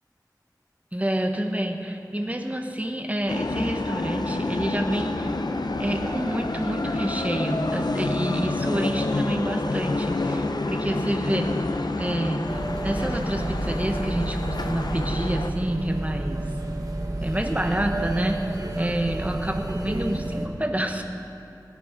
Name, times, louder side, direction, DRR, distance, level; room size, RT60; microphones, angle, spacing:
voice 1, 0.9-5.4 5.8-11.5 12.0-16.4 17.2-18.4 18.8-21.0, right 1 dB, 20° right, 4 dB, 1.2 m, -28 dB
sound 1, 3.3-15.5, left 2 dB, 75° left, 0.6 m, -28 dB
sound 2, 12.5-20.5, right 1 dB, 55° right, 1.4 m, -30 dB
17.0 x 10.5 x 5.1 m, 2.7 s
wide cardioid pair, 45°, 7 cm